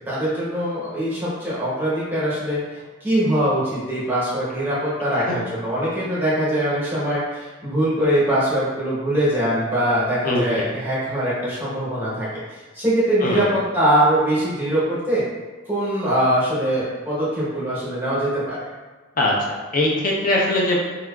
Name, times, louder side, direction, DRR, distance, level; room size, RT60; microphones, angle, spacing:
voice 1, 0.0-2.6 3.0-15.2 15.7-18.6, right 1 dB, 10° right, -9 dB, 0.8 m, -22 dB
voice 2, 10.2-10.6 13.2-13.4 19.2-20.8, left 1 dB, 40° left, -2 dB, 0.4 m, -21 dB
2.8 x 2.4 x 2.2 m, 1.3 s
head